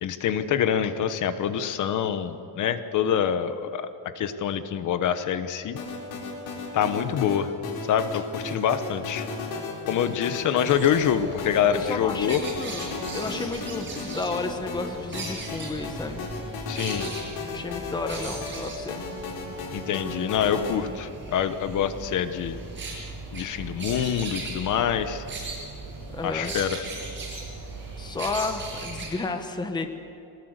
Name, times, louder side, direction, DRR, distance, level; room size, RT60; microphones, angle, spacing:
voice 1, 0.0-3.9 4.1-5.8 6.7-7.5 7.8-9.3 9.9-12.4 16.7-17.1 19.7-22.5 23.3-25.2 26.2-26.8, left 9 dB, 50° left, 11 dB, 1.2 m, -25 dB
sound 1, 5.8-20.8, left 3 dB, 85° left, 4.4 m, -35 dB
sound 2, 10.6-29.1, right 3 dB, 30° right, 7.6 m, -38 dB
voice 2, 11.7-16.3 17.5-19.0 26.1-26.5 28.0-29.9, left 3 dB, 10° left, 6 dB, 1.0 m, -32 dB
23.5 x 19.5 x 8.1 m, 2.9 s
cardioid pair, 180°, 38 cm